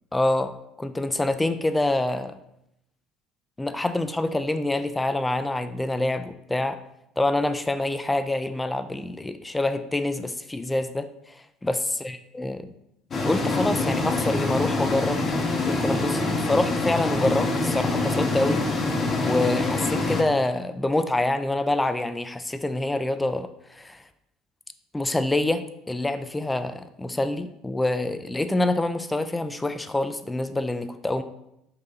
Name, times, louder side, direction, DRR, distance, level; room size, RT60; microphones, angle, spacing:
voice 1, 0.1-2.4 3.6-6.8 7.2-12.6 13.2-15.2 15.7-18.6 19.2-24.0 24.9-31.2, left 2 dB, 10° left, 10 dB, 0.3 m, -26 dB
sound 1, 13.1-20.2, left 2 dB, 35° left, 0.7 m, -25 dB
4.1 x 2.6 x 3.9 m, 0.80 s
figure-of-eight pair, 60°, 0 cm